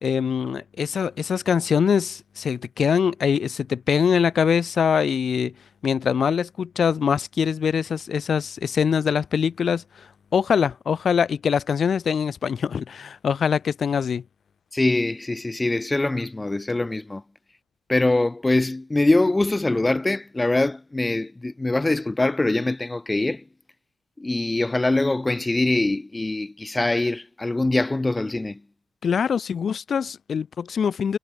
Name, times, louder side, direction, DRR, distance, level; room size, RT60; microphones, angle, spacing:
voice 1, 0.0-5.5 5.8-10.1 10.3-14.2 29.0-31.2, left 7 dB, 50° left, 0.7 m, -23 dB
voice 2, 14.7-17.2 17.9-23.4 24.2-28.6, left 2 dB, 15° left, 0.5 m, -23 dB
cardioid pair, 85°, 0 cm